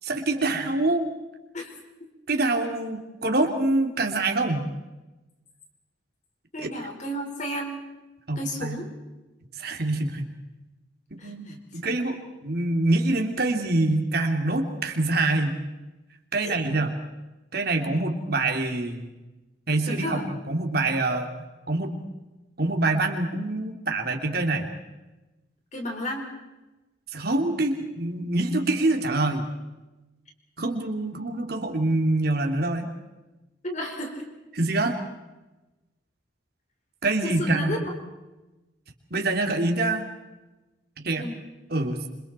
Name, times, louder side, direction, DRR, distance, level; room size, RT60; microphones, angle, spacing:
voice 1, 0.0-1.1 2.3-4.7 6.6-6.7 8.3-8.8 9.6-10.2 11.1-15.6 16.3-16.9 17.5-19.1 19.7-21.3 21.7-21.9 22.6-24.7 27.1-29.5 30.6-32.9 34.5-35.0 37.0-37.9 39.1-40.0 41.0-41.3 41.7-42.0, right 2 dB, 55° right, 4 dB, 3.1 m, -25 dB
voice 2, 6.5-7.8 8.4-8.9 11.2-11.5 16.4-16.6 19.8-20.2 25.7-26.3 33.6-34.3 37.2-37.9 41.1-41.3, equal, 40° left, 2 dB, 5.0 m, -32 dB
28.5 x 26.5 x 4.5 m, 1.1 s
head